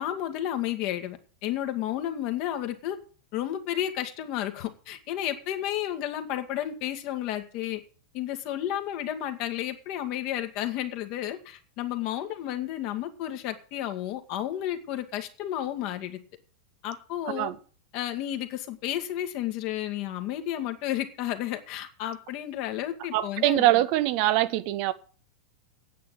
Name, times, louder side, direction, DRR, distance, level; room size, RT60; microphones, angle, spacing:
voice 1, 0.0-3.0 3.3-7.8 8.1-16.2 16.8-17.5 17.9-23.7, left 12 dB, 45° left, 1.7 m, -32 dB
voice 2, 23.1-24.9, right 15 dB, 45° right, 0.7 m, -23 dB
9.4 x 8.6 x 7.8 m
figure-of-eight pair, 90°, 0 cm